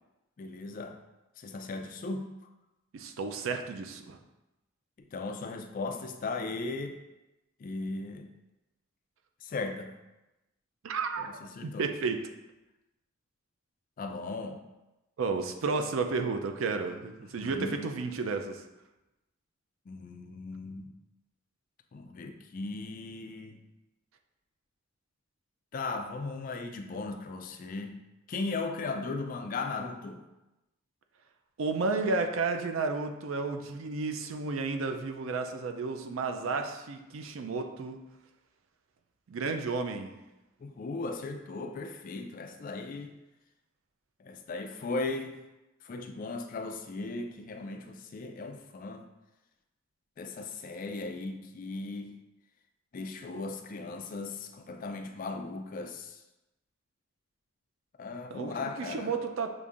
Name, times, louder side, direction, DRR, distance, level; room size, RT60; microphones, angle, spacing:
voice 1, 0.4-1.0 1.4-2.3 5.1-7.0 7.6-8.3 9.4-9.9 11.2-11.9 14.0-14.6 17.4-17.9 19.9-20.9 21.9-23.6 25.7-28.0 28.3-30.2 40.6-43.1 44.2-45.4 45.8-49.0 50.2-52.2 52.9-56.2 58.0-59.2, left 3 dB, 40° left, 6 dB, 0.3 m, -37 dB
voice 2, 2.9-4.2 10.8-11.4 11.6-12.2 15.2-18.6 31.6-38.0 39.3-40.2 58.3-59.5, right 4 dB, 75° right, 6 dB, 0.4 m, -32 dB
6.7 x 2.6 x 2.4 m, 0.99 s
head